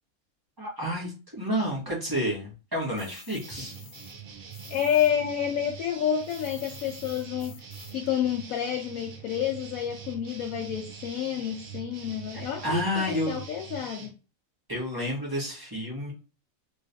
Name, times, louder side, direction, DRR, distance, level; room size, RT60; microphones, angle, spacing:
voice 1, 0.6-3.7 12.6-13.4 14.7-16.1, equal, 15° right, -5 dB, 1.4 m, -30 dB
sound 1, 3.0-5.1 5.4-8.1, left 6 dB, 55° left, 0.9 m, -49 dB
sound 2, 3.4-14.1, right 7 dB, 90° right, 1.3 m, -44 dB
voice 2, 4.7-14.1, left 9 dB, 85° left, 2 dB, 1.0 m, -29 dB
3.1 x 3.1 x 2.7 m, 0.32 s
omnidirectional pair, 1.4 m